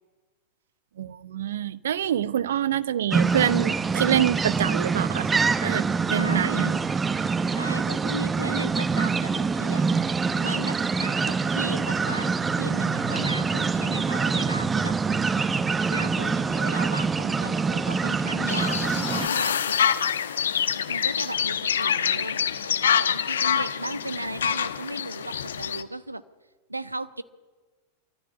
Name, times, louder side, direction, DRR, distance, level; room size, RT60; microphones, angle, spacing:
voice 1, 1.0-5.3 5.6-6.8, right 10 dB, 60° right, 0.9 m, -26 dB
sound 1, 3.1-19.3, right 5 dB, 15° right, 1.2 m, -25 dB
voice 2, 6.1-6.9 7.4-10.1 10.4-15.0 15.9-20.0 20.9-26.2 26.7-27.2, right 1 dB, 85° right, 1.1 m, -36 dB
sound 2, 18.5-25.8, left 8 dB, 65° left, 1.1 m, -26 dB
28.0 x 14.0 x 9.7 m
figure-of-eight pair, 90°, 0 cm